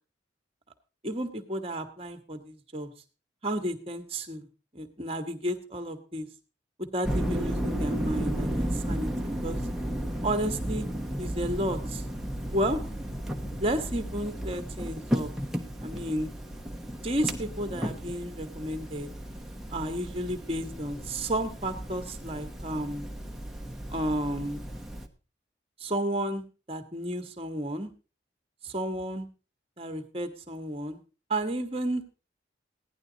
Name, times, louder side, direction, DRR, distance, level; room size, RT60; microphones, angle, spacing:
voice 1, 1.0-2.9 3.4-4.5 4.7-6.3 6.9-9.6 10.2-10.9 11.2-12.0 12.5-12.8 13.6-15.3 15.8-16.3 17.0-19.1 19.7-23.1 23.9-24.7 25.8-27.9 28.6-29.3 29.8-31.0 31.3-32.0, right 1 dB, 30° right, 7 dB, 1.4 m, -32 dB
sound 1, 7.0-25.1, equal, ahead, 1.0 m, -34 dB
16.0 x 11.0 x 3.9 m, 0.33 s
head